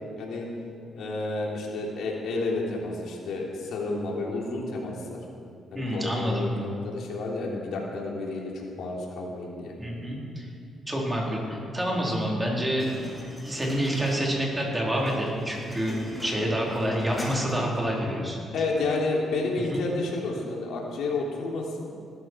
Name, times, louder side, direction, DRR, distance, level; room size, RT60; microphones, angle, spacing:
voice 1, 0.9-5.2 5.7-9.7 18.5-21.9, left 3 dB, 75° left, -2 dB, 3.3 m, -30 dB
voice 2, 5.7-6.6 9.8-10.5 10.9-12.9 13.4-16.0 16.2-18.4 19.7-19.8, equal, 15° right, -3 dB, 4.1 m, -27 dB
sound 1, 12.8-17.8, left 1 dB, 5° left, 4.6 m, -40 dB
19.0 x 13.0 x 4.7 m, 2.3 s
cardioid pair, 90°, 0 cm